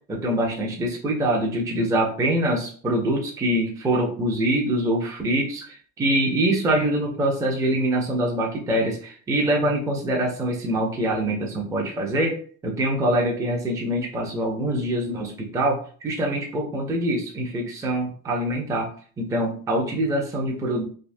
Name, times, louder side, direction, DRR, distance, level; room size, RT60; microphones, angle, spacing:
voice 1, 0.1-12.4 12.6-20.8, right 1 dB, 10° right, -1 dB, 0.4 m, -24 dB
3.4 x 2.7 x 2.5 m, 0.43 s
cardioid pair, 150°, 45 cm